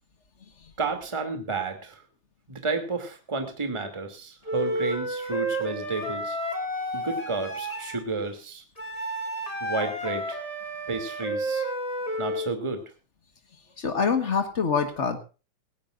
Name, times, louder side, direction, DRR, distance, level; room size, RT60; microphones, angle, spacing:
voice 1, 0.8-2.0 2.5-6.4 6.9-8.6 9.6-10.4 10.9-11.6 12.2-12.8, right 3 dB, 10° right, 6 dB, 2.1 m, -31 dB
Wind instrument woodwind instrument, 4.5-8.0 8.8-12.5, right 1 dB, 10° left, 2.5 m, -31 dB
voice 2, 13.8-15.2, left 5 dB, 80° left, 8 dB, 0.6 m, -25 dB
19.0 x 18.0 x 2.5 m, 0.33 s
omnidirectional pair, 3.7 m